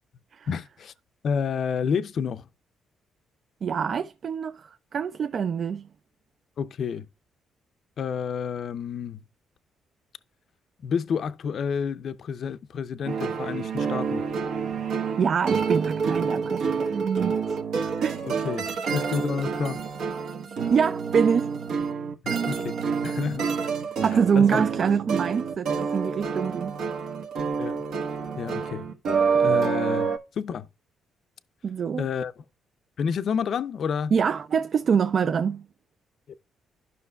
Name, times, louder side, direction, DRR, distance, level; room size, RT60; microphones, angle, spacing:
voice 1, 0.5-0.9 1.2-2.5 6.6-7.1 8.0-9.2 10.8-14.2 18.2-18.7 18.9-19.8 22.2-23.4 24.4-24.6 27.6-27.8 28.4-28.9 29.3-30.7 32.0-32.4 33.0-34.1 36.3-36.4, left 6 dB, 60° left, 0.5 m, -29 dB
voice 2, 3.6-5.9 14.8-17.6 18.0-18.3 20.7-21.5 24.0-26.8 31.6-32.1 34.1-35.7, right 6 dB, 50° right, 0.4 m, -25 dB
sound 1, 13.0-30.2, right 5 dB, 75° right, 1.3 m, -28 dB
12.0 x 5.7 x 2.3 m
cardioid pair, 90°, 0 cm